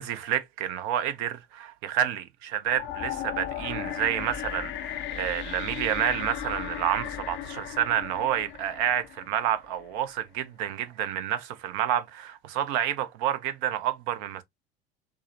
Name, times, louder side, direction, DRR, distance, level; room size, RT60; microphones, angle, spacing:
voice 1, 0.0-14.4, right 10 dB, 50° right, 0.7 m, -29 dB
sound 1, 2.6-9.7, left 11 dB, 35° left, 0.5 m, -36 dB
4.6 x 2.1 x 2.8 m
figure-of-eight pair, 70°, 31 cm